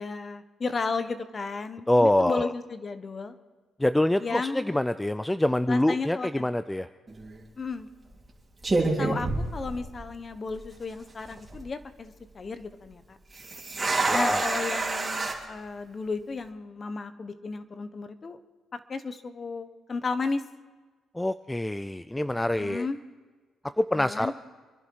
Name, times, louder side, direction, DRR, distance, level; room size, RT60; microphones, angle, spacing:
voice 1, 0.0-3.4 4.2-4.7 5.7-6.5 7.6-7.9 9.0-13.2 14.1-18.4 18.7-20.4 22.6-23.0 23.9-24.3, left 4 dB, 35° left, 11 dB, 1.2 m, -34 dB
voice 2, 1.9-2.5 3.8-6.9 14.1-14.4 21.1-22.9 23.8-24.3, left 1 dB, 10° left, 13 dB, 0.4 m, -25 dB
sound 1, 7.1-7.4 8.1-8.3 8.6-10.2 10.5-10.6 11.2-11.6 13.3-15.3, right 3 dB, 20° right, 3.5 m, -28 dB
26.5 x 11.0 x 4.8 m, 1.4 s
cardioid pair, 90°, 0 cm